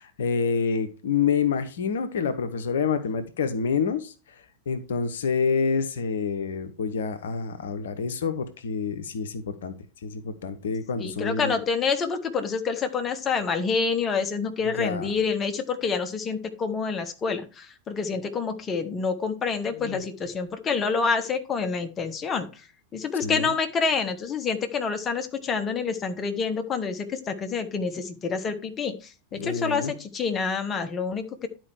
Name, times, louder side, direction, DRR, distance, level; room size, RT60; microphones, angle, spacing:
voice 1, 0.0-4.1 4.7-9.7 10.0-11.6 14.7-15.1 19.8-20.0 23.2-23.5 29.3-29.9, left 6 dB, 60° left, 9 dB, 0.9 m, -27 dB
voice 2, 11.0-22.5 22.9-31.5, left 5 dB, 25° left, 7 dB, 1.2 m, -27 dB
11.0 x 4.6 x 4.6 m, 0.32 s
figure-of-eight pair, 90°, 0 cm